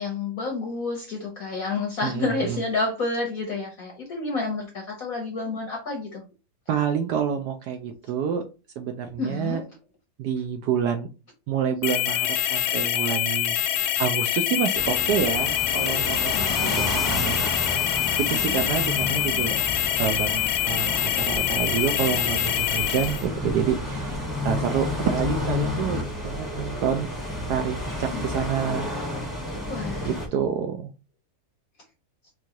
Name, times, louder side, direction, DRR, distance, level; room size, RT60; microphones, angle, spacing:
voice 1, 0.0-6.2 8.1-8.2 9.2-9.6 16.3-17.0 18.4-18.7 28.1-28.5 29.7-30.2, left 3 dB, 60° left, 1 dB, 1.0 m, -30 dB
voice 2, 2.0-2.6 6.7-8.4 8.8-9.6 10.2-11.1 11.5-17.5 18.2-19.6 20.0-24.2 24.4-27.1 27.5-28.9 30.0-30.9, right 8 dB, 75° right, 5 dB, 0.9 m, -28 dB
sound 1, 11.8-23.2, left 12 dB, 80° left, 1.3 m, -25 dB
sound 2, 14.7-30.3, left 1 dB, ahead, 0.9 m, -31 dB
4.5 x 2.4 x 2.8 m, 0.30 s
omnidirectional pair, 2.2 m